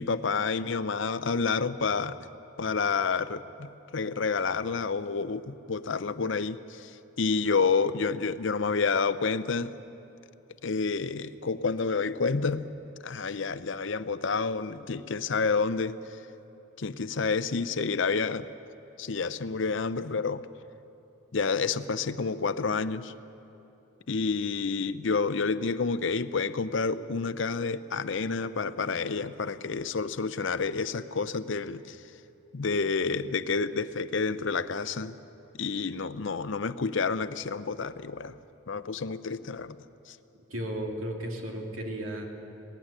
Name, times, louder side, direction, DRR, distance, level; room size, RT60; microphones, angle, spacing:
voice 1, 0.0-2.2 2.6-6.9 7.2-9.7 10.6-12.7 13.0-16.0 16.8-18.5 19.0-20.4 21.3-23.1 24.1-32.0 32.5-35.2 35.6-38.4 38.7-39.8 40.1-40.2, left 4 dB, 60° left, 13 dB, 0.6 m, -29 dB
voice 2, 40.5-42.3, right 1 dB, 75° right, 1 dB, 2.6 m, -34 dB
19.0 x 15.5 x 10.0 m, 2.8 s
head